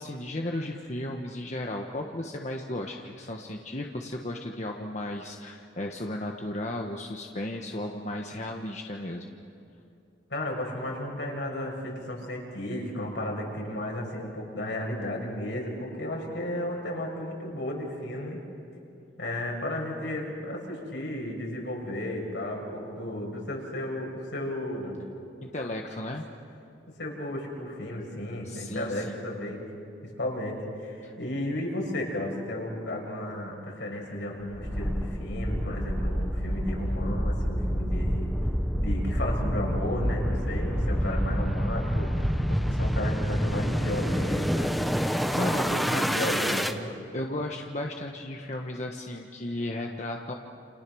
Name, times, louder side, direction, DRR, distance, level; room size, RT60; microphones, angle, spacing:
voice 1, 0.0-9.3 25.4-26.3 28.4-29.2 31.0-31.1 45.1-45.9 47.0-50.3, left 1 dB, 40° left, 1 dB, 1.4 m, -35 dB
voice 2, 10.3-18.4 19.2-25.0 27.0-29.6 30.2-38.3 38.7-44.7 45.5-46.9, left 1 dB, 70° left, -1 dB, 6.6 m, -33 dB
sound 1, 34.5-46.7, equal, ahead, 1.0 m, -28 dB
29.5 x 29.5 x 6.4 m, 2.7 s
head